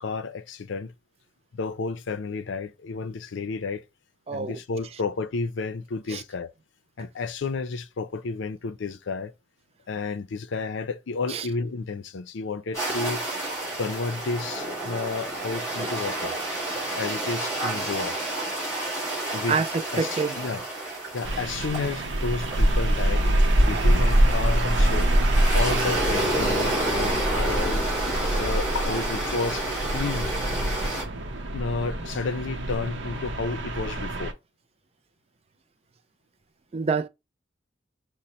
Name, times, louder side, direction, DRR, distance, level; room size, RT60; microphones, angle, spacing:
voice 1, 0.0-0.9 1.5-3.8 4.3-6.5 7.0-9.3 9.9-13.2 13.8-16.4 17.0-18.2 19.3-19.6 19.9-20.6 21.1-23.3 23.6-25.1 25.5-27.9 28.3-29.7 29.9-30.3 31.5-34.3, left 4 dB, 85° left, 0.5 m, -31 dB
voice 2, 4.3-4.6 6.1-6.2 11.3-11.5 19.5-20.4 23.9-24.0 36.7-37.1, right 4 dB, 30° right, 0.3 m, -27 dB
sound 1, 12.7-31.0, right 1 dB, 15° left, 2.4 m, -30 dB
sound 2, 21.2-34.3, right 1 dB, 75° right, 0.7 m, -25 dB
5.1 x 2.1 x 4.2 m
head